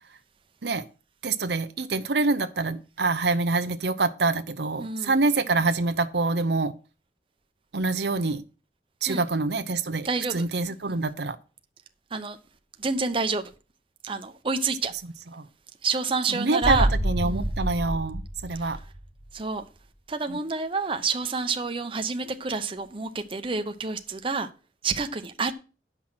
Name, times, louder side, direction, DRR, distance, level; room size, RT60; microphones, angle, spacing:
voice 1, 1.2-6.7 7.7-8.4 9.0-11.4 15.3-15.4 16.3-18.8 20.3-20.4, right 3 dB, 70° right, 0.8 m, -26 dB
voice 2, 4.8-5.1 9.1-9.2 10.0-10.4 12.1-12.4 12.8-13.5 14.0-14.9 15.8-16.9 17.2-17.5 18.6-18.7 19.3-19.6 20.1-24.5 24.8-25.5, right 4 dB, 30° right, 0.8 m, -28 dB
sound 1, 16.6-19.3 19.6-19.7, right 1 dB, 5° left, 1.4 m, -28 dB
10.0 x 5.8 x 6.1 m
head